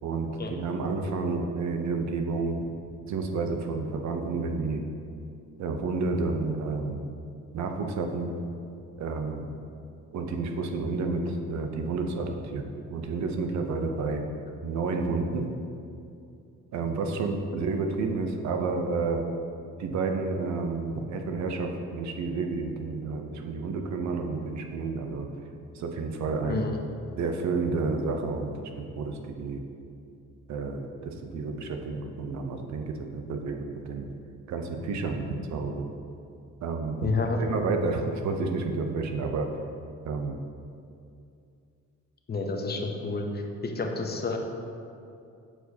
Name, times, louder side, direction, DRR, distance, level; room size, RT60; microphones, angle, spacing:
voice 1, 0.0-2.5 3.1-4.8 5.6-7.1 7.5-8.3 9.0-9.5 10.1-14.2 14.6-15.6 16.7-19.2 19.8-25.3 25.7-26.7 27.2-28.5 28.8-29.6 30.5-34.1 34.5-35.9 36.6-37.1 37.4-39.5 40.0-40.4, right 4 dB, 65° right, 4 dB, 0.7 m, -30 dB
voice 2, 37.0-37.4 42.3-44.4, left 3 dB, 35° left, 2 dB, 0.8 m, -30 dB
7.9 x 4.6 x 2.8 m, 2.5 s
cardioid pair, 90°, 30 cm